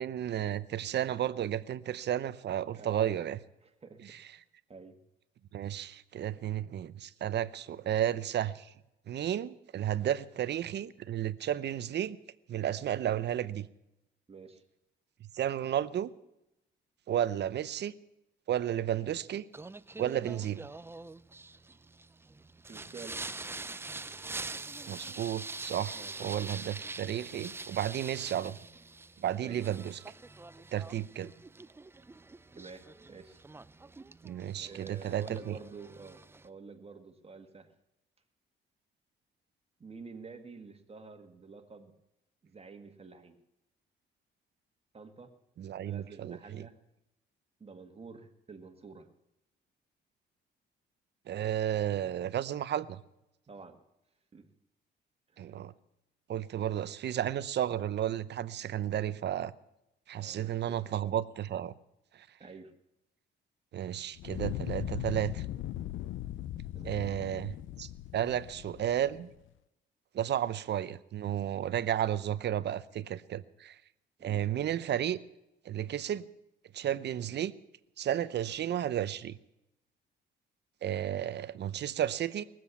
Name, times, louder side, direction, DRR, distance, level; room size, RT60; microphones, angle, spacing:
voice 1, 0.0-3.4 4.1-4.2 5.5-8.7 9.1-12.2 12.5-13.7 15.3-16.1 17.1-17.9 18.5-19.5 20.0-20.6 24.9-28.6 29.2-30.0 30.7-31.3 34.2-35.6 45.6-46.7 51.3-53.0 55.4-55.7 56.3-59.5 60.1-61.7 63.7-65.5 66.8-69.3 70.1-73.8 74.2-75.2 75.6-76.2 76.7-77.5 78.0-79.4 80.8-82.4, right 11 dB, 60° right, 16 dB, 0.7 m, -33 dB
voice 2, 2.7-3.2 3.6-4.0 4.3-4.4 4.7-5.0 7.7-7.8 14.3-14.6 22.7-23.2 26.0-26.3 29.4-29.6 32.5-33.4 34.5-37.7 39.8-41.9 42.4-43.4 44.9-45.3 45.8-46.8 47.6-49.1 53.5-53.8 54.3-54.5 55.3-55.6 60.1-61.2 62.4-62.7 66.7-67.2 74.2-74.4, right 4 dB, 30° right, 6 dB, 1.8 m, -49 dB
Singing, 19.5-36.5, right 3 dB, 10° right, 0.4 m, -45 dB
Fire, 64.2-69.3, left 13 dB, 75° left, 0.5 m, -39 dB
19.5 x 7.7 x 8.3 m, 0.89 s
cardioid pair, 90°, 20 cm